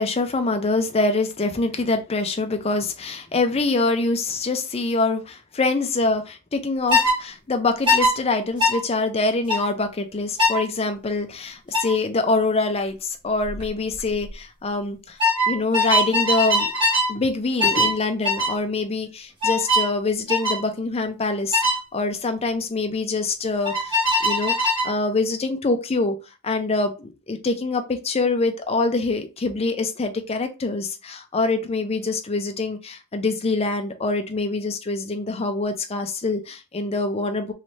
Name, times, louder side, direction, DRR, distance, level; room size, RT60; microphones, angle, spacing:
voice 1, 0.0-15.2 15.5-16.7 17.1-21.6 21.9-24.6 24.8-26.2 26.4-37.5, left 3 dB, 30° left, 0.5 m, -25 dB
sound 1, 6.9-7.2 7.9-8.1 8.6-8.8 9.5-9.7 10.4-10.6 11.7-11.9 13.4-13.6 13.9-14.3 15.2-17.1 17.6-18.0 18.2-18.5 19.4-19.9 20.3-20.6 21.5-21.8 23.6-24.9, left 1 dB, 20° right, 1.3 m, -21 dB
3.2 x 2.7 x 3.1 m
head